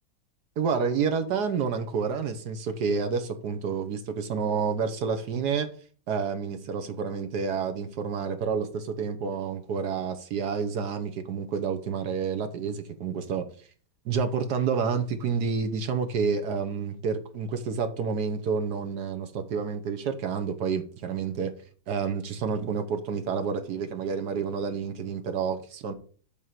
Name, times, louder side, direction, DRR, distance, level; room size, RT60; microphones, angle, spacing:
voice 1, 0.6-5.7 6.1-13.5 14.0-21.5 21.9-25.9, right 6 dB, 60° right, 1.2 m, -29 dB
8.4 x 3.7 x 6.6 m
omnidirectional pair, 2.4 m